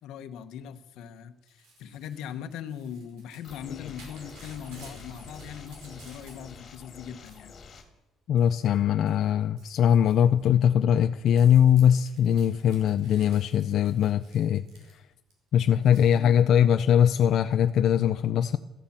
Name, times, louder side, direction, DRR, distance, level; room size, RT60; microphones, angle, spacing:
voice 1, 0.0-7.5 16.1-16.6, left 8 dB, 75° left, 10 dB, 1.1 m, -40 dB
Crumpling crinkling / Tearing, 1.5-6.7 7.0-7.8 8.4-8.8 9.1-15.3 15.9-16.1, right 3 dB, 90° right, 5.5 m, -54 dB
sound 1, 3.4-7.8, left 5 dB, 35° left, 2.4 m, -47 dB
voice 2, 8.3-14.6 15.5-18.6, left 9 dB, 50° left, 8 dB, 0.5 m, -21 dB
13.5 x 13.0 x 7.3 m, 0.93 s
cardioid pair, 180°, 0 cm